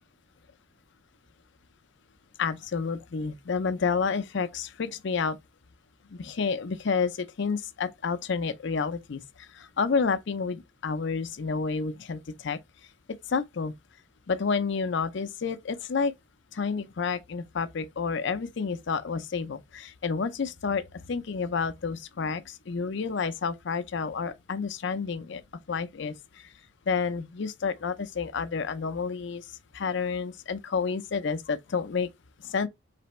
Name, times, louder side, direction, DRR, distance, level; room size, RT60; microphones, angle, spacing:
voice 1, 2.4-5.4 6.1-12.6 13.3-13.7 14.3-16.1 16.5-25.4 25.7-26.4 26.9-29.5 29.7-32.1 32.4-32.7, left 5 dB, 60° left, 0.5 m, -30 dB
4.3 x 3.3 x 3.0 m
head